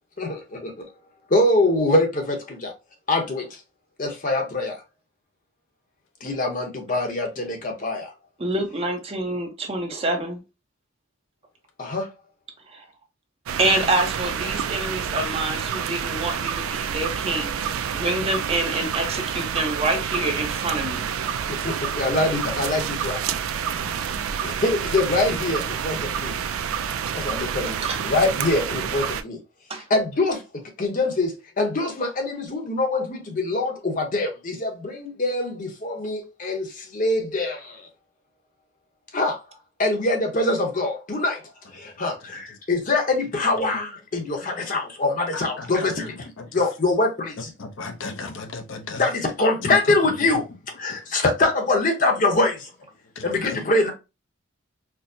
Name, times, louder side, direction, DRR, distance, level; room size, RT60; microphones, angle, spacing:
voice 1, 0.2-0.7 1.3-2.7 3.1-3.5 4.0-4.8 6.2-8.1 11.8-12.1 21.6-23.2 24.4-26.4 27.1-29.4 29.9-30.4 30.8-37.8 39.1-39.4 39.8-41.4 41.7-47.5 49.0-50.5 50.8-52.7 53.2-53.9, left 2 dB, 40° left, 0.8 m, -24 dB
voice 2, 8.4-10.4 12.7-12.8 13.6-17.6 17.9-21.0 27.8-28.1 29.7-29.9, right 2 dB, 30° right, 0.6 m, -26 dB
sound 1, 13.5-29.2, right 7 dB, 85° right, 0.3 m, -28 dB
voice 3, 47.6-49.1 49.6-49.7 53.2-53.6, left 3 dB, 65° left, 0.5 m, -35 dB
4.5 x 2.0 x 2.6 m
head